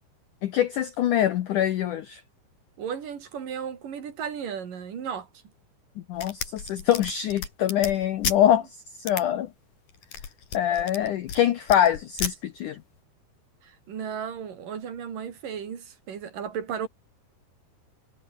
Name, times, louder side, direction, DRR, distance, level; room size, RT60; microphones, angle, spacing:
voice 1, 0.4-2.2 6.1-8.7 9.0-9.5 10.5-12.8, left 11 dB, 85° left, 1.8 m, -24 dB
voice 2, 2.8-5.3 13.6-16.9, right 7 dB, 50° right, 4.4 m, -34 dB
sound 1, 6.1-8.4 9.1-9.2 9.9-11.4 11.7-12.3, left 7 dB, 50° left, 4.6 m, -33 dB
omnidirectional pair, 5.2 m